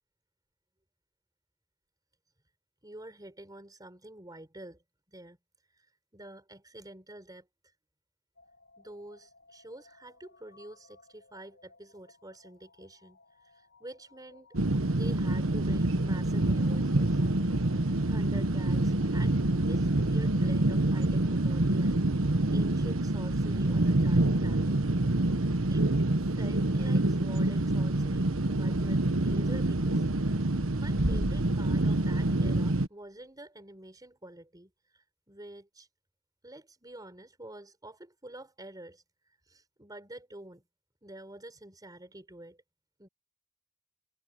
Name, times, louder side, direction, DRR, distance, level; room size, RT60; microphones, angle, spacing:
voice 1, 2.8-4.8 5.1-5.4 5.7-7.5 8.8-14.5 14.9-17.2 18.1-24.8 25.7-25.9 26.4-30.0 30.8-35.9 36.4-40.6 41.0-42.6 43.0-43.1, right 1 dB, 20° right, 4.8 m, -48 dB
sound 1, 8.4-20.2, left 3 dB, 60° left, 6.9 m, -59 dB
sound 2, 14.5-32.9, right 2 dB, 85° right, 1.3 m, -27 dB
Bass drum, 31.0-32.4, equal, 55° right, 3.0 m, -34 dB
head